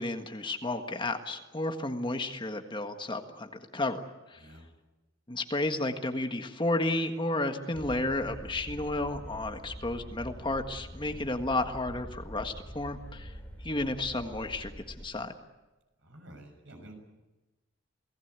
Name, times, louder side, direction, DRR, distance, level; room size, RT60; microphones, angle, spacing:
voice 1, 0.0-4.0 4.3-4.4 5.3-13.3 13.6-15.3, left 2 dB, 25° left, 6 dB, 1.6 m, -32 dB
sound 1, 7.7-15.1, equal, 5° left, 4.7 m, -44 dB
voice 2, 16.0-17.0, right 1 dB, 70° right, 4 dB, 6.5 m, -49 dB
28.5 x 18.5 x 8.2 m, 1.1 s
head